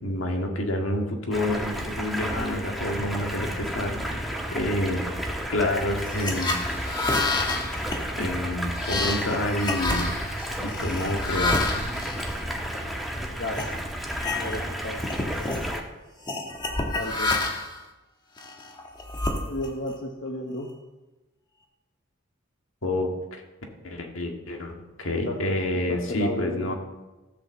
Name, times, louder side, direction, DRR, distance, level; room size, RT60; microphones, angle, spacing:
voice 1, 0.0-5.0 5.5-6.6 8.2-10.1 10.6-11.6 22.8-23.4 23.8-26.7, left 1 dB, 85° left, 2 dB, 1.8 m, -28 dB
Stream, 1.3-15.8, equal, ahead, 1.3 m, -32 dB
sound 1, 6.0-13.0 13.5-13.7 14.1-14.7 15.0-15.7 16.3-17.8 18.4-19.9, left 2 dB, 20° left, 1.4 m, -29 dB
voice 2, 13.4-13.7 14.4-15.0 16.8-17.4 19.5-20.7 25.2-25.4 25.9-26.7, left 1 dB, 60° left, 1 dB, 1.1 m, -33 dB
13.5 x 5.6 x 7.3 m, 1.1 s
head